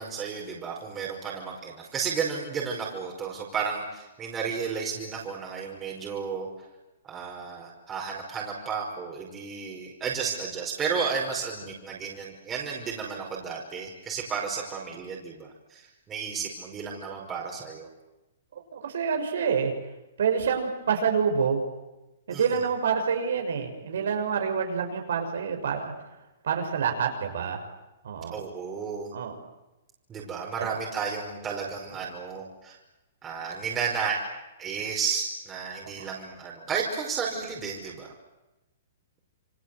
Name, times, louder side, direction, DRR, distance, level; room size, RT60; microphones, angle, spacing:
voice 1, 0.0-6.5 7.0-17.9 22.3-22.7 28.3-29.1 30.1-32.8 33.2-34.2 34.6-38.1, right 6 dB, 20° right, -2 dB, 5.2 m, -33 dB
voice 2, 18.7-19.7 20.2-21.6 22.3-25.9 26.4-27.6 28.0-28.4 29.1-29.3 30.6-30.7 36.0-36.1, right 6 dB, 75° right, 4 dB, 6.3 m, -27 dB
28.0 x 23.5 x 8.1 m, 1.0 s
hypercardioid pair, 150°, 0 cm